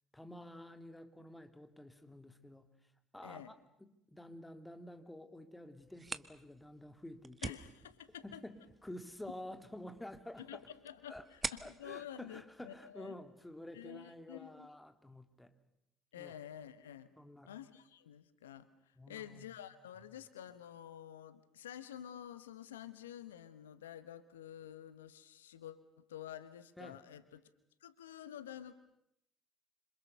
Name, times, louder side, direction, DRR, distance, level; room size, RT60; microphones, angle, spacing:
voice 1, 0.1-2.7 3.1-7.6 8.2-10.6 11.1-11.2 11.6-15.5 16.1-16.3 17.2-17.5 18.9-19.5 26.8-27.0, left 1 dB, 10° left, 8 dB, 3.2 m, -50 dB
voice 2, 3.2-3.5 7.4-8.4 10.4-13.1 13.7-14.7 16.1-17.1 17.4-27.4 27.8-28.7, left 10 dB, 80° left, 13 dB, 1.1 m, -50 dB
sound 1, 5.8-13.3, right 3 dB, 25° right, 1.5 m, -48 dB
27.0 x 27.0 x 6.8 m, 0.79 s
figure-of-eight pair, 55°, 0 cm